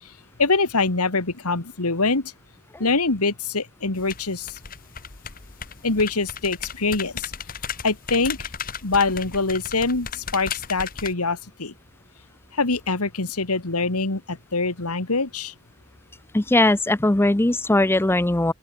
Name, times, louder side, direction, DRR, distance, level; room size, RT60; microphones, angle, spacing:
voice 1, 0.4-2.3 2.8-4.6 5.8-7.3 7.8-8.5 8.8-11.7 12.5-15.5, left 3 dB, 85° left, 2.2 m, -24 dB
sound 1, 3.9-11.1, left 7 dB, 40° left, 1.5 m, -36 dB
voice 2, 16.3-18.5, left 1 dB, 10° left, 0.5 m, -19 dB
open air
head